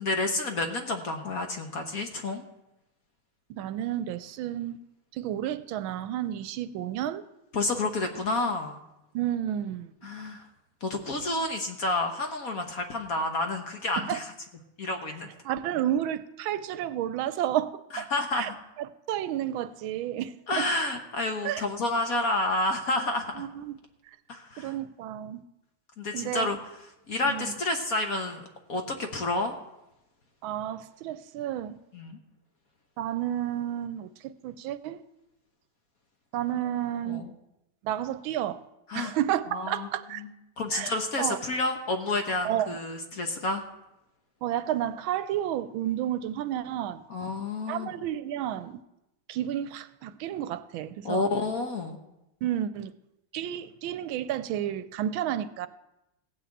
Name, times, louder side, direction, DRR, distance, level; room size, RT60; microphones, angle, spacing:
voice 1, 0.0-2.4 7.5-8.8 10.0-10.4 10.8-14.3 14.8-15.3 17.9-18.6 20.5-23.5 24.3-24.7 26.0-26.6 27.1-29.5 31.9-32.2 37.1-37.3 38.9-39.1 39.5-39.9 40.2-40.3 40.6-43.6 47.1-47.9 51.0-52.0, left 2 dB, 50° left, 5 dB, 1.4 m, -30 dB
voice 2, 3.5-4.8 5.1-7.2 9.1-9.9 14.0-14.2 15.4-18.1 18.3-18.5 18.8-20.7 21.4-21.6 23.4-23.7 24.6-25.4 26.1-26.5 27.2-27.5 30.4-31.8 33.0-35.0 36.3-37.2 37.8-38.6 38.9-40.2 40.7-40.9 41.2-41.4 42.4-42.8 44.4-47.0 47.7-48.8 49.3-51.2 52.4-52.9 53.3-55.7, right 11 dB, 80° right, 14 dB, 1.4 m, -31 dB
16.0 x 5.8 x 8.4 m, 0.90 s
omnidirectional pair, 2.3 m